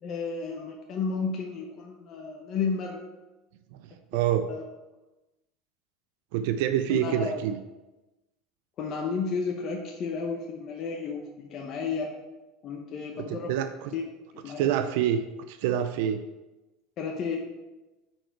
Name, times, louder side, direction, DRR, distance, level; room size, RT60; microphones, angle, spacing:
voice 1, 0.0-3.0 4.5-4.6 6.9-7.4 8.8-12.1 12.6-13.5 13.9-14.0 14.4-14.7 17.0-17.5, left 5 dB, 40° left, 0 dB, 0.9 m, -32 dB
voice 2, 4.1-4.4 6.3-7.6 13.5-13.9 14.6-15.2 15.5-16.2, right 10 dB, 75° right, 9 dB, 0.4 m, -26 dB
9.0 x 4.5 x 4.6 m, 1.1 s
cardioid pair, 150°, 0 cm